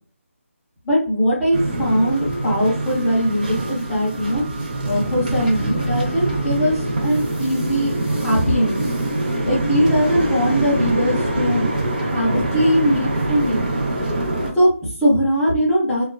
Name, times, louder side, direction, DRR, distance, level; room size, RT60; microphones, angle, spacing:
voice 1, 0.8-4.4 4.8-8.9 9.4-11.7 12.0-13.6 14.6-16.0, equal, ahead, -11 dB, 0.4 m, -20 dB
sound 1, 1.5-14.5, right 1 dB, 40° right, 0.6 m, -24 dB
2.5 x 2.2 x 2.3 m, 0.41 s
figure-of-eight pair, 175°, 8 cm